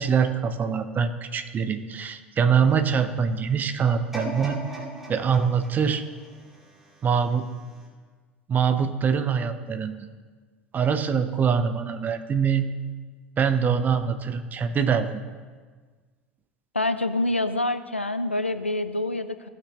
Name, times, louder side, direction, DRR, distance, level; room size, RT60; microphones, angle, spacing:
voice 1, 0.0-4.6 5.1-6.0 7.0-7.5 8.5-10.1 10.7-12.7 13.4-15.2, right 6 dB, 30° right, 9 dB, 0.7 m, -24 dB
sound 1, 4.1-7.2 7.7-7.8, equal, 5° right, 2.3 m, -38 dB
voice 2, 16.7-19.5, left 2 dB, 90° left, 11 dB, 0.3 m, -26 dB
16.0 x 6.1 x 2.9 m, 1.5 s
figure-of-eight pair, 70°, 6 cm